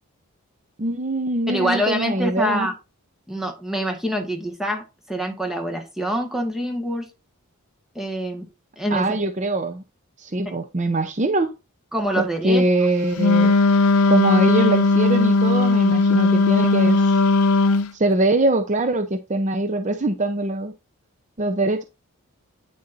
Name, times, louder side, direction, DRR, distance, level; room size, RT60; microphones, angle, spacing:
voice 1, 0.8-2.7 8.9-9.8 10.2-11.5 12.4-13.5 14.1-17.2 17.9-20.7 21.4-21.8, right 2 dB, 35° right, 0.7 m, -22 dB
voice 2, 1.5-2.7 3.3-7.1 7.9-8.5 8.8-9.2 10.4-10.5 11.9-12.7, equal, ahead, 1.5 m, -25 dB
Wind instrument woodwind instrument, 13.2-17.9, left 3 dB, 80° left, 0.7 m, -17 dB
9.4 x 6.7 x 2.6 m
head